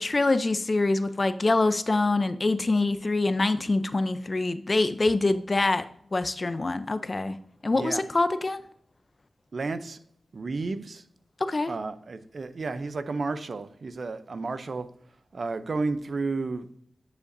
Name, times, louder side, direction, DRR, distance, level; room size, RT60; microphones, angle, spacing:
voice 1, 0.0-5.8 6.1-7.4 7.6-8.6 11.4-11.7, left 2 dB, 45° left, 12 dB, 0.5 m, -25 dB
voice 2, 9.5-10.0 10.3-11.0 11.7-14.9 15.3-16.7, right 3 dB, 65° right, 11 dB, 0.5 m, -32 dB
9.6 x 5.0 x 2.6 m, 0.64 s
cardioid pair, 45°, 0 cm